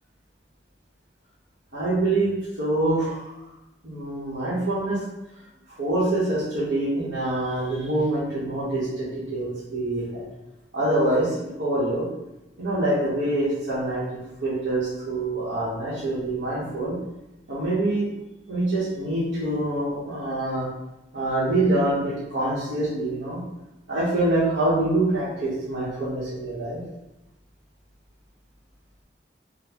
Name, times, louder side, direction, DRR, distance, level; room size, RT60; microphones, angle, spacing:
voice 1, 1.7-2.3 2.6-3.3 3.8-5.0 5.8-10.2 10.7-12.0 12.6-14.0 14.4-16.9 17.5-18.1 18.5-20.7 21.1-23.4 23.9-26.8, right 1 dB, 75° right, -11 dB, 1.0 m, -25 dB
3.8 x 2.2 x 3.0 m, 0.95 s
head